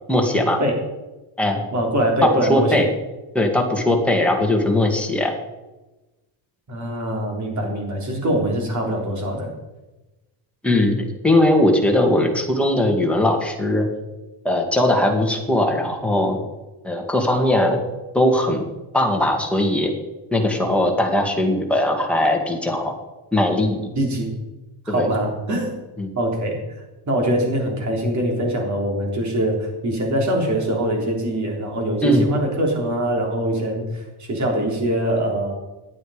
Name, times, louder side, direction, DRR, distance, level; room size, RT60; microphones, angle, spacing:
voice 1, 0.1-0.6 1.4-1.6 2.2-2.9 3.3-5.3 10.6-13.9 14.4-16.4 16.8-17.8 18.1-18.6 18.9-19.9 20.3-22.9 23.3-23.8 24.9-25.1 26.0-26.1 32.0-32.3, left 1 dB, ahead, 1 dB, 2.0 m, -19 dB
voice 2, 1.7-2.9 6.7-9.5 24.0-24.3 24.9-25.7 26.2-26.8 27.1-35.5, right 1 dB, 35° right, 1 dB, 3.7 m, -23 dB
15.0 x 11.0 x 5.1 m, 1.1 s
cardioid pair, 180°, 50 cm